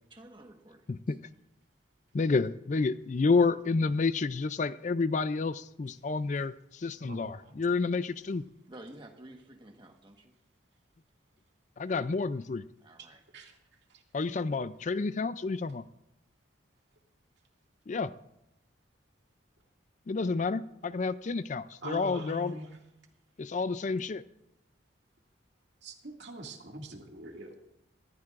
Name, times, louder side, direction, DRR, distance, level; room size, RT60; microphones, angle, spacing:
voice 1, 0.1-1.1 8.7-10.3 12.8-13.2 14.5-14.6, right 1 dB, 25° right, 3 dB, 1.3 m, -51 dB
voice 2, 2.1-8.4 11.8-12.6 14.1-15.8 17.9-18.1 20.1-22.6 23.4-24.2, left 4 dB, 40° left, 14 dB, 0.4 m, -30 dB
voice 3, 7.0-7.5 13.3-13.6 13.9-14.0 21.8-22.7 25.8-27.5, right 1 dB, 60° right, 1 dB, 2.3 m, -43 dB
24.0 x 14.5 x 2.5 m, 0.85 s
head